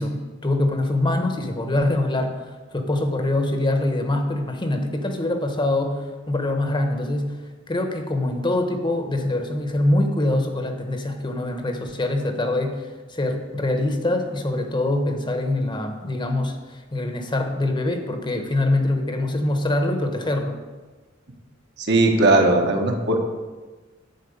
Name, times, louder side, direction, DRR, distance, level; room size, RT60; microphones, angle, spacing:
voice 1, 0.0-7.4 7.7-20.6, left 1 dB, 25° left, 5 dB, 1.1 m, -24 dB
voice 2, 21.8-23.2, right 2 dB, 55° right, 2 dB, 1.4 m, -18 dB
11.0 x 4.6 x 8.1 m, 1.3 s
head